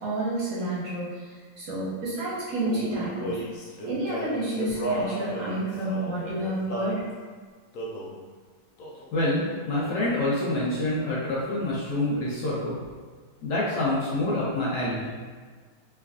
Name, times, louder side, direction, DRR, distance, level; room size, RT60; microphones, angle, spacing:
voice 1, 0.0-1.2 1.6-3.4 3.8-7.0, right 2 dB, 55° right, -9 dB, 1.4 m, -30 dB
Male singing, 2.6-7.0 7.7-8.2 8.8-9.1 9.3-10.3, equal, 90° left, 0.7 m, -34 dB
voice 2, 9.1-12.8 13.4-15.1, left 1 dB, 65° left, -7 dB, 1.2 m, -27 dB
3.5 x 3.1 x 2.4 m, 1.5 s
omnidirectional pair, 2.2 m